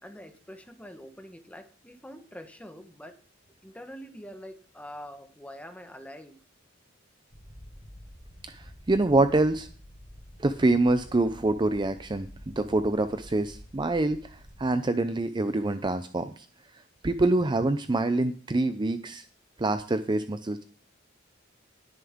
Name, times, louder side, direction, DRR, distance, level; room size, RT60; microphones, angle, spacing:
voice 1, 0.0-3.2 3.6-6.4, equal, 5° left, 7 dB, 1.2 m, -45 dB
sound 1, 7.3-14.7, equal, 35° left, 2.3 m, -49 dB
voice 2, 8.5-9.7 10.4-16.5 17.0-19.2 19.6-20.6, right 2 dB, 25° right, 10 dB, 0.5 m, -26 dB
19.0 x 7.0 x 3.6 m, 0.40 s
head